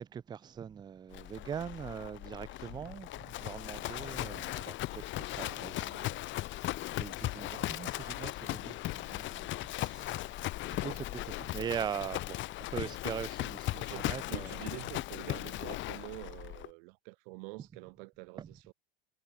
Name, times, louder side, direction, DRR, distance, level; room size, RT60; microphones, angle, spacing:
voice 1, 0.0-14.7 18.4-18.5, right 8 dB, 15° right, 0.5 m, -42 dB
Livestock farm animals working animals, 1.1-16.7, left 16 dB, 40° left, 1.1 m, -38 dB
voice 2, 13.7-18.7, right 30 dB, 65° right, 3.3 m, -47 dB
supercardioid pair, 125°, 30 cm